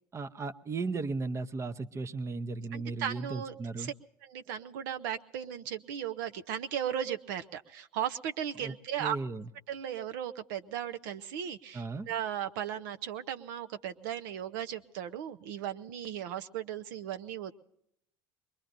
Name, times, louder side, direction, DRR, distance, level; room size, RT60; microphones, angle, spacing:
voice 1, 0.1-3.9 8.6-8.7 9.0-9.5 11.7-12.1, right 3 dB, 25° right, 13 dB, 0.8 m, -36 dB
voice 2, 2.7-3.9 4.2-9.2 9.7-17.5, right 9 dB, 75° right, 9 dB, 0.7 m, -36 dB
23.5 x 21.5 x 2.6 m, 0.76 s
hypercardioid pair, 75°, 11 cm